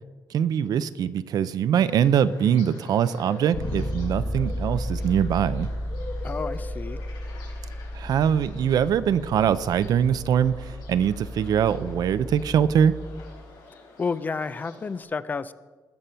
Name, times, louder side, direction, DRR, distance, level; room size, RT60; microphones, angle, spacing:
voice 1, 0.3-5.7 7.9-12.9, right 8 dB, 65° right, 14 dB, 0.6 m, -23 dB
sound 1, 1.7-15.0, left 3 dB, 90° left, 4.4 m, -46 dB
Bass guitar, 3.5-13.4, equal, 50° left, 1.4 m, -33 dB
voice 2, 6.2-7.0 14.0-15.5, left 4 dB, 25° left, 15 dB, 0.4 m, -30 dB
19.0 x 7.7 x 5.6 m, 1.3 s
wide cardioid pair, 175°, 7 cm